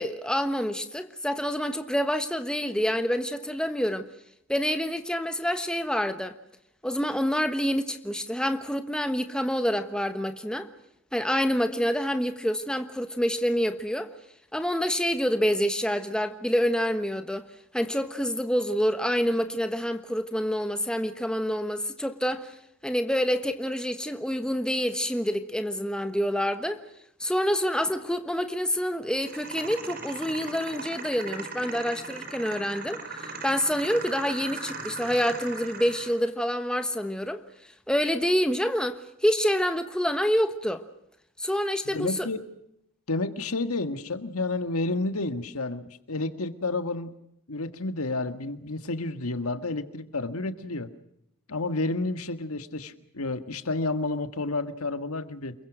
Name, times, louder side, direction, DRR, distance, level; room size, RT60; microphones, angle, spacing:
voice 1, 0.0-4.1 4.5-6.3 6.8-10.7 11.1-14.1 14.5-17.5 17.7-22.5 22.8-26.8 27.2-37.4 37.9-40.8 41.4-42.3, equal, 5° left, 1.2 m, -27 dB
sound 1, 29.2-36.2, right 4 dB, 45° right, 4.2 m, -38 dB
voice 2, 41.8-42.4 43.1-47.1 47.5-50.9 51.5-55.5, left 2 dB, 80° left, 1.7 m, -30 dB
28.0 x 22.5 x 6.1 m
head